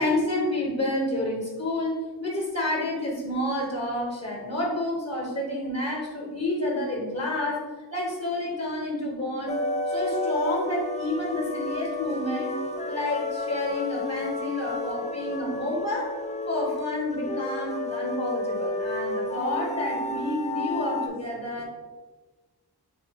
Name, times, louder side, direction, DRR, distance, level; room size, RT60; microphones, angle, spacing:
voice 1, 0.0-9.6 9.9-16.1 16.5-21.6, left 1 dB, 40° left, -2 dB, 1.0 m, -29 dB
sound 1, 9.5-21.1, left 2 dB, 20° left, 0.4 m, -31 dB
6.6 x 2.3 x 3.5 m, 1.3 s
wide cardioid pair, 85°, 39 cm